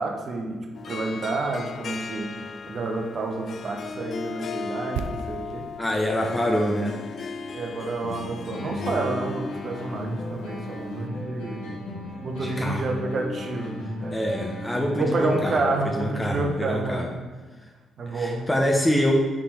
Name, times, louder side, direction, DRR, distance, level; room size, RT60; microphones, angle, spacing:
voice 1, 0.0-5.7 6.2-6.3 7.5-11.7 12.2-14.2 15.0-17.2 18.0-18.5, right 2 dB, 55° right, 3 dB, 1.0 m, -29 dB
Harp, 0.7-11.1, left 5 dB, 55° left, 0.3 m, -37 dB
sound 1, 5.0-8.9 9.1-9.3, right 6 dB, 85° right, 0.3 m, -39 dB
voice 2, 5.8-7.0 12.4-12.9 14.1-17.1 18.1-19.1, equal, 15° left, 1 dB, 0.9 m, -26 dB
sound 2, 8.0-16.0, left 1 dB, 90° left, 1.4 m, -35 dB
7.1 x 3.6 x 4.4 m, 1.4 s
hypercardioid pair, 50°, 0 cm